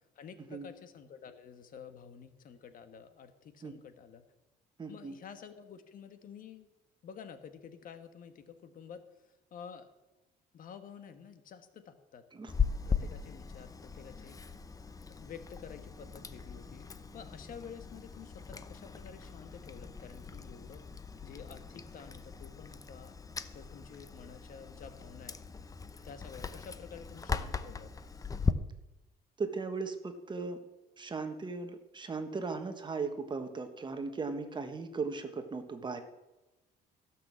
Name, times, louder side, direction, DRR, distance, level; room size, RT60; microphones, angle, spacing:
voice 1, 0.1-4.2 4.9-6.7 7.0-9.0 9.5-9.9 10.5-12.2 12.9-14.4 15.1-20.8 21.2-23.2 23.5-25.4 26.0-27.9, left 7 dB, 55° left, 9 dB, 1.3 m, -50 dB
voice 2, 4.8-5.1 12.3-12.5 29.4-30.6 31.0-36.0, right 4 dB, 25° right, 8 dB, 1.4 m, -37 dB
Chewing mastication, 12.5-28.5, left 5 dB, 20° left, 0.7 m, -39 dB
15.5 x 6.3 x 7.5 m, 1.0 s
cardioid pair, 110°, 17 cm